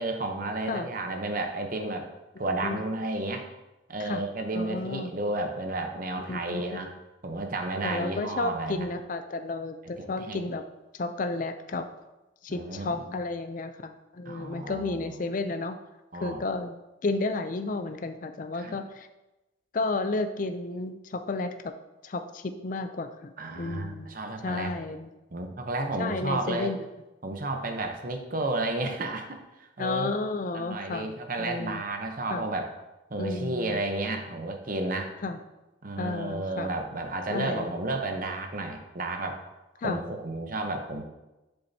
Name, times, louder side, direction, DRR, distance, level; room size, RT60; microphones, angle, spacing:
voice 1, 0.0-2.1 2.4-3.5 3.9-6.9 7.2-8.9 9.8-10.4 12.5-13.1 14.2-15.4 16.1-16.4 18.6-18.8 23.4-24.7 25.3-26.7 27.2-30.1 30.5-32.7 33.1-35.1 35.8-39.4 39.8-41.0, right 2 dB, 45° right, 5 dB, 0.9 m, -32 dB
voice 2, 4.5-5.1 6.2-6.9 7.8-10.6 10.9-11.9 12.4-15.8 16.2-16.7 17.0-19.1 19.7-21.7 22.0-24.1 24.4-25.1 26.0-26.8 29.8-31.8 32.3-32.4 33.2-33.8 35.2-35.4 36.0-36.7 37.3-37.7 39.8-40.0, left 3 dB, 40° left, 8 dB, 0.4 m, -32 dB
7.6 x 6.9 x 2.8 m, 1.0 s
head